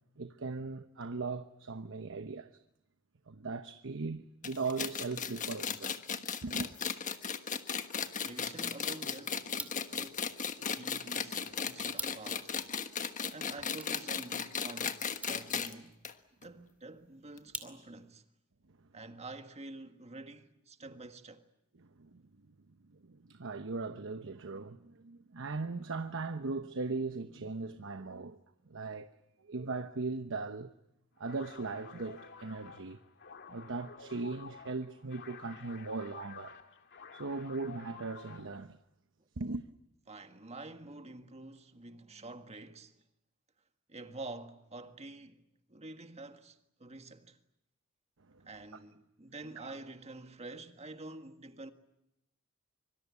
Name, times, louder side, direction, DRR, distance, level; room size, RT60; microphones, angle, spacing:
voice 1, 0.2-2.5 3.3-6.0 6.4-6.7 21.8-22.2 22.9-28.4 28.7-29.1 29.4-30.7 31.2-33.0 33.5-36.6 37.1-38.8 39.4-39.6 48.3-48.4, right 3 dB, 60° right, 1.0 m, -39 dB
sound 1, 4.4-15.7 16.0-16.1 16.4-16.5 17.4-17.5, left 6 dB, 35° left, 1.4 m, -36 dB
voice 2, 8.2-10.3 10.6-12.6 13.3-16.0 16.4-18.2 18.9-21.4 39.2-39.3 40.1-43.0 43.9-45.4 45.7-47.4 48.5-51.7, right 2 dB, 30° right, 1.7 m, -48 dB
sound 2, 9.4-18.2, right 2 dB, 5° right, 2.4 m, -50 dB
sound 3, 31.2-38.6, left 5 dB, 55° left, 2.2 m, -51 dB
25.0 x 24.5 x 8.4 m
head